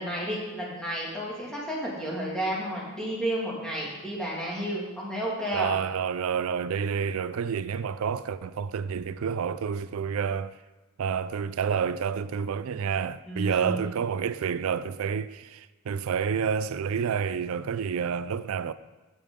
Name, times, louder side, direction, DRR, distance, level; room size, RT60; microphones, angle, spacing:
voice 1, 0.0-5.7 13.3-13.9, equal, 5° left, 2.1 m, -32 dB
voice 2, 5.5-10.6 11.0-18.7, right 7 dB, 70° right, 0.4 m, -29 dB
14.5 x 5.3 x 3.7 m
head